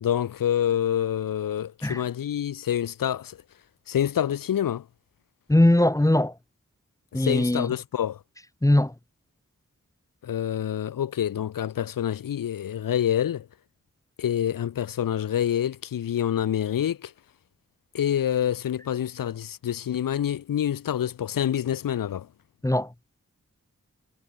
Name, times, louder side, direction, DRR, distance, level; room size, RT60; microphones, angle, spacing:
voice 1, 0.0-3.4 3.9-4.8 7.1-8.2 10.2-13.5 14.2-17.1 17.9-22.3, left 10 dB, 85° left, 0.5 m, -27 dB
voice 2, 5.5-6.3 7.1-7.7 8.6-8.9 22.6-22.9, left 1 dB, 10° left, 0.7 m, -20 dB
cardioid pair, 40°, 33 cm